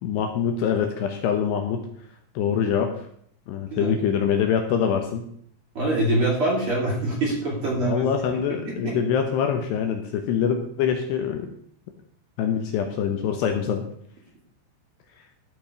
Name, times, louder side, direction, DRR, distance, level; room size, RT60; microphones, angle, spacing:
voice 1, 0.0-1.9 2.4-2.9 3.5-5.2 7.8-11.5 12.4-13.8, left 8 dB, 75° left, 5 dB, 2.7 m, -24 dB
voice 2, 5.7-8.1, right 1 dB, 35° right, -5 dB, 3.3 m, -24 dB
13.5 x 5.3 x 5.1 m, 0.66 s
omnidirectional pair, 5.3 m